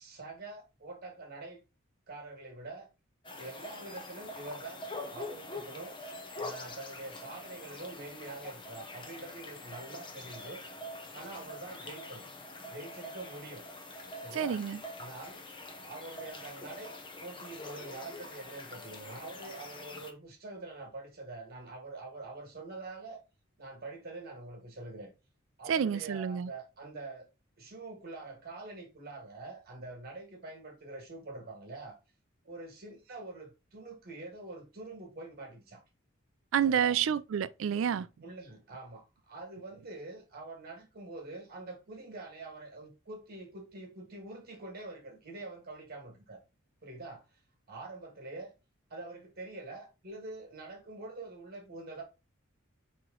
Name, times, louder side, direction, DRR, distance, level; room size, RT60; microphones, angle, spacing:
voice 1, 0.0-1.6 2.1-2.9 3.4-6.0 6.4-10.6 11.1-12.2 12.7-13.6 14.2-14.6 15.0-15.4 15.8-16.9 17.2-23.2 23.6-25.1 25.6-27.3 27.6-32.0 32.4-35.8 36.6-37.0 38.2-46.4 46.8-47.4 47.7-48.5 48.9-52.0, right 2 dB, 50° right, 1.7 m, -45 dB
sound 1, 3.2-20.1, left 2 dB, 25° left, 0.6 m, -45 dB
voice 2, 14.3-14.8 25.7-26.5 36.5-38.1, right 8 dB, 65° right, 0.3 m, -29 dB
4.7 x 3.0 x 3.8 m
head